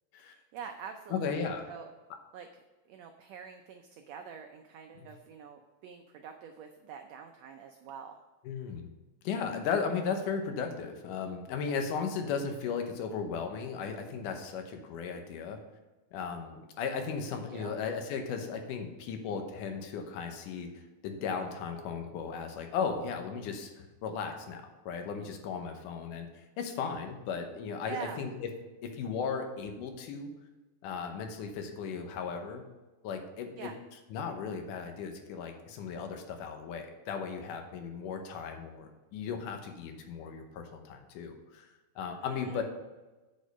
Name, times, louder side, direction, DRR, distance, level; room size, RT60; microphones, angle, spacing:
voice 1, 0.2-1.9 2.3-8.2 17.3-17.8 27.9-28.2 33.6-33.8 42.2-42.6, right 7 dB, 85° right, 5 dB, 1.5 m, -46 dB
voice 2, 1.1-1.7 5.0-5.1 8.5-8.9 9.2-15.6 16.1-28.5 28.8-30.3 30.8-32.6 33.0-33.7 34.1-41.7 42.0-42.6, left 6 dB, 80° left, 5 dB, 2.5 m, -36 dB
8.6 x 5.2 x 5.3 m, 1.1 s
omnidirectional pair, 3.7 m